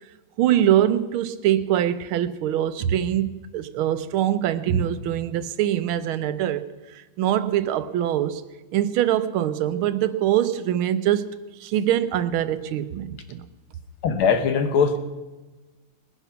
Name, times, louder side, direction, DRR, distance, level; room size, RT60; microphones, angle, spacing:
voice 1, 0.4-6.7 6.9-8.4 8.7-13.5, right 11 dB, 85° right, 1.6 m, -23 dB
voice 2, 14.0-15.0, left 6 dB, 90° left, 2.0 m, -20 dB
20.0 x 10.0 x 5.8 m
omnidirectional pair, 2.3 m